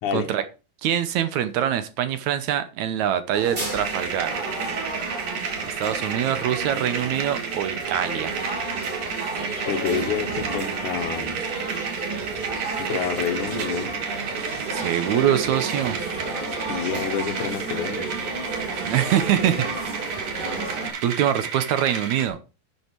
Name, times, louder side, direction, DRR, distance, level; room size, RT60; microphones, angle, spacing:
voice 1, 0.1-0.4 0.8-4.3 5.6-8.5 14.7-16.0 18.8-19.7 21.0-22.4, right 10 dB, 70° right, 1.9 m, -24 dB
sound 1, 3.3-20.9, right 3 dB, 30° right, 4.2 m, -32 dB
sound 2, 3.8-22.3, right 6 dB, 55° right, 2.6 m, -32 dB
voice 2, 9.7-11.4 12.8-13.9 16.6-18.1, left 8 dB, 65° left, 2.8 m, -28 dB
11.0 x 6.7 x 4.5 m
omnidirectional pair, 3.9 m